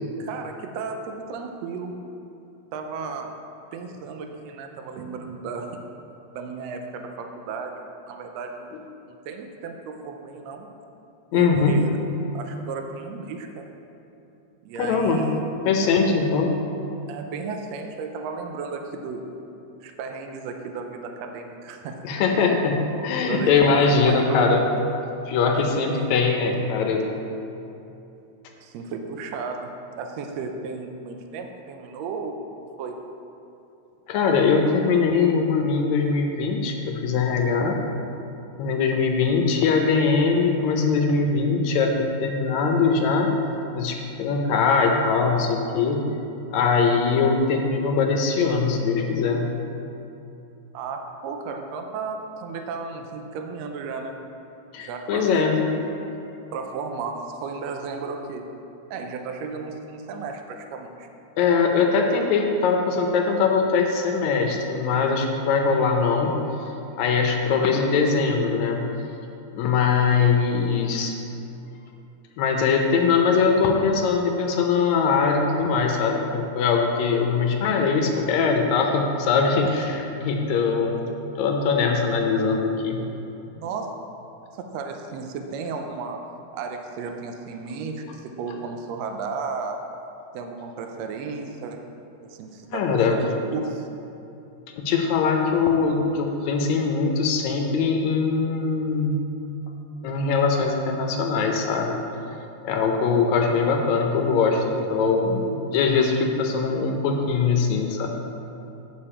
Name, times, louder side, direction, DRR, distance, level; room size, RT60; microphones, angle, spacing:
voice 1, 0.2-1.9 2.7-3.3 3.7-5.7 6.3-7.7 8.1-8.8 9.2-10.7 11.3-11.9 12.3-13.5 14.6-15.4 17.1-19.2 19.8-22.0 23.3-24.6 25.4-26.3 28.6-29.7 30.0-32.3 32.8-33.0 50.7-54.1 54.8-55.5 56.5-58.4 58.9-61.1 83.5-83.9 84.5-86.2 86.5-89.8 90.3-91.8 92.2-92.8 93.1-93.9, right 4 dB, 75° right, 4 dB, 1.7 m, -34 dB
voice 2, 11.3-11.7 14.8-15.2 15.7-16.5 22.0-22.8 23.0-24.6 25.3-27.1 34.1-37.8 38.6-43.3 43.8-46.0 46.5-49.5 54.7-55.6 61.4-66.4 67.0-68.9 69.5-71.1 72.4-81.0 81.4-83.1 92.7-93.2 94.8-99.2 100.0-102.0 102.6-108.1, left 5 dB, 75° left, 2 dB, 2.0 m, -21 dB
9.4 x 6.8 x 4.3 m, 2.8 s
omnidirectional pair, 3.3 m